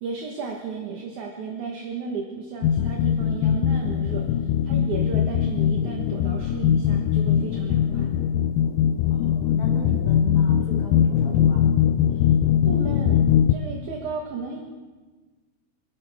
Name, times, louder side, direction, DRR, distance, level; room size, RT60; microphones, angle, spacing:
voice 1, 0.0-8.1 12.1-12.3 12.7-14.6, right 5 dB, 60° right, 1 dB, 2.4 m, -34 dB
sound 1, 2.6-13.6, left 9 dB, 80° left, 2.2 m, -21 dB
voice 2, 9.1-11.7, left 1 dB, 40° left, -4 dB, 3.6 m, -36 dB
27.5 x 11.5 x 3.5 m, 1.3 s
omnidirectional pair, 4.4 m